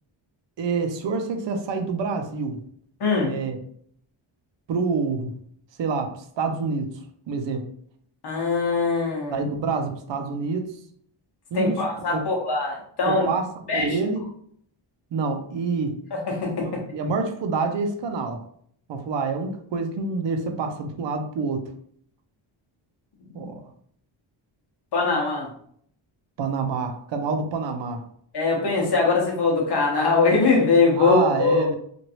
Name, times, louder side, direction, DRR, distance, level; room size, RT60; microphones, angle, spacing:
voice 1, 0.6-2.6 3.2-3.6 4.7-5.3 5.8-7.0 7.3-7.7 9.3-10.8 11.5-12.2 13.1-13.5 13.7-14.2 15.1-16.0 16.6-18.4 18.9-21.7 23.3-23.6 26.4-28.0 31.0-31.7, right 4 dB, 65° right, 5 dB, 0.6 m, -27 dB
voice 2, 3.0-3.3 8.2-9.4 11.5-13.3 13.7-14.0 16.3-16.7 23.3-23.5 24.9-25.5 28.3-31.7, left 4 dB, 55° left, -1 dB, 1.1 m, -22 dB
3.0 x 2.6 x 2.8 m, 0.63 s
wide cardioid pair, 155°, 48 cm